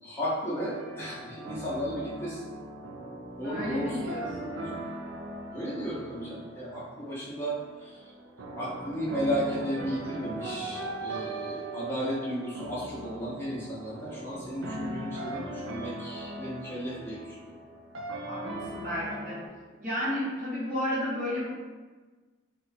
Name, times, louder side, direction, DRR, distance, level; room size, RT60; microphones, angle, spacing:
voice 1, 0.0-2.4 3.4-4.7 5.5-7.5 7.8-8.0 8.6-17.3, equal, 10° left, -9 dB, 0.6 m, -34 dB
sound 1, 0.6-19.5, right 1 dB, 75° right, 0.5 m, -39 dB
voice 2, 3.4-4.5 18.3-19.4 19.8-21.5, left 1 dB, 40° right, -7 dB, 1.0 m, -32 dB
3.0 x 2.2 x 4.1 m, 1.4 s
head